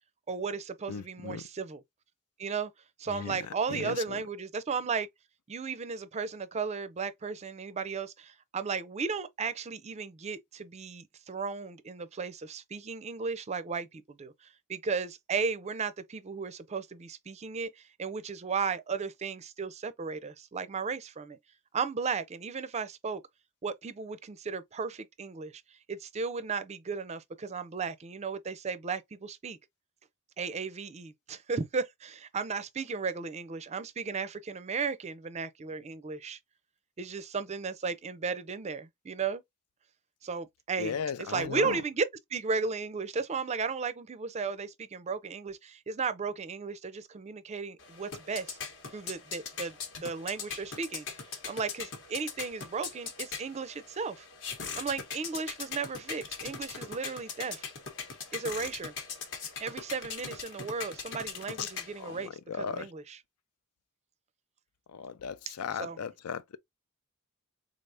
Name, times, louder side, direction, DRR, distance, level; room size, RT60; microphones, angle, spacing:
voice 1, 0.3-1.8 2.4-2.7 3.0-5.1 5.5-21.4 21.7-23.2 23.6-25.6 25.9-29.6 30.4-36.4 37.0-39.4 40.2-48.6 48.9-49.8 50.0-51.1 51.5-54.3 54.8-57.6 58.3-58.9 59.6-63.2 65.5-66.0, right 5 dB, 30° right, 0.4 m, -35 dB
voice 2, 0.9-1.4 3.1-3.4 3.7-4.2 40.8-41.8 61.6-61.7 62.0-62.9 64.9-66.6, left 7 dB, 90° left, 0.5 m, -36 dB
sound 1, 47.8-62.3, left 5 dB, 60° left, 1.1 m, -41 dB
3.7 x 3.4 x 2.5 m
head